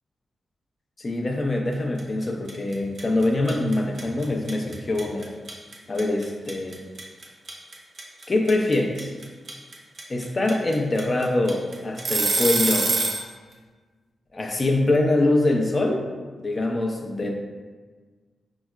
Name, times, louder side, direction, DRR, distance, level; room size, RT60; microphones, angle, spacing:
voice 1, 1.0-5.3 5.9-6.8 8.3-9.1 10.1-12.9 14.3-16.1 16.4-17.3, left 2 dB, 30° left, 1 dB, 0.5 m, -24 dB
sound 1, 2.0-2.2 2.5-13.2, right 3 dB, 50° right, 0.6 m, -25 dB
5.3 x 2.0 x 2.3 m, 1.4 s
wide cardioid pair, 110°, 0 cm